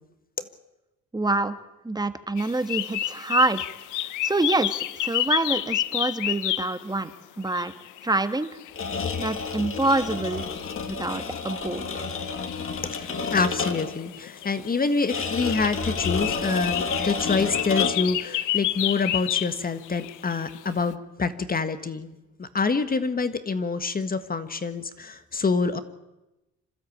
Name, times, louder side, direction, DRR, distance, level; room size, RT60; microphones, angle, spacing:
voice 1, 1.1-1.6 1.8-3.7 4.0-7.1 7.4-7.7 8.0-8.5 9.2-10.4 10.9-12.0, right 2 dB, 15° right, 11 dB, 1.4 m, -26 dB
sound 1, 2.4-6.8 7.4-20.7, left 14 dB, 85° left, 0.8 m, -31 dB
sound 2, 8.7-14.0 15.1-18.2, left 5 dB, 45° left, 2.0 m, -30 dB
voice 2, 12.8-25.8, left 4 dB, 30° left, 11 dB, 1.5 m, -27 dB
26.5 x 12.5 x 8.6 m, 0.99 s
cardioid pair, 90°, 30 cm